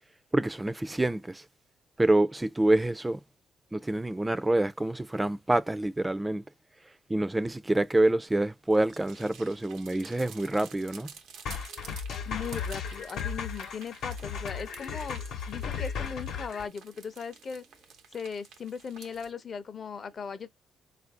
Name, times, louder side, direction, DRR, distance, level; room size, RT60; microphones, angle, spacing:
voice 1, 0.3-1.4 2.0-3.2 3.7-6.4 7.1-11.1, right 1 dB, 15° right, 0.4 m, -26 dB
sound 1, 8.6-19.3, right 7 dB, 90° right, 0.7 m, -51 dB
sound 2, 11.5-16.7, left 6 dB, 80° left, 0.9 m, -35 dB
voice 2, 12.2-17.6 18.1-20.5, left 6 dB, 45° left, 0.6 m, -38 dB
3.8 x 2.5 x 3.6 m
cardioid pair, 105°, 0 cm